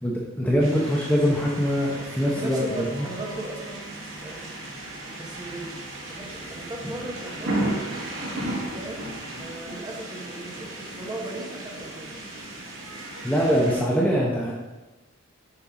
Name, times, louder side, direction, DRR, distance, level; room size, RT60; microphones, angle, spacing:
voice 1, 0.0-2.6 2.9-3.1 13.2-14.5, equal, 5° left, -4 dB, 0.8 m, -23 dB
sound 1, 0.6-13.8, right 1 dB, 65° right, 1.7 m, -35 dB
voice 2, 2.4-3.8 4.2-5.7 6.0-7.5 8.7-9.0 9.4-12.1, right 1 dB, 20° right, -2 dB, 1.3 m, -37 dB
7.1 x 5.5 x 3.7 m, 1.1 s
head